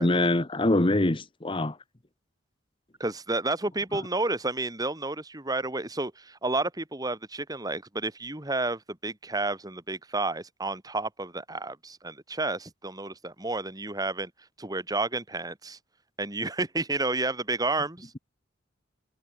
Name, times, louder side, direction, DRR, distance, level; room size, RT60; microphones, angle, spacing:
voice 1, 0.0-1.8, left 2 dB, 25° left, 1.1 m, -24 dB
voice 2, 3.0-14.3 14.6-15.8 16.2-18.2, right 2 dB, 20° right, 2.5 m, -31 dB
head